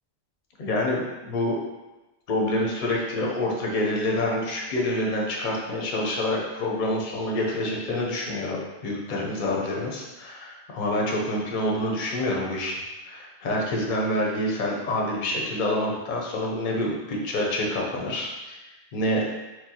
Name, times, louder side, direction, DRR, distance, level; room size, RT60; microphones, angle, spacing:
voice 1, 0.6-1.6 2.3-12.8 13.0-18.6 18.9-19.3, left 1 dB, 50° left, -2 dB, 0.7 m, -27 dB
4.5 x 2.1 x 2.7 m, 1.1 s
omnidirectional pair, 1.1 m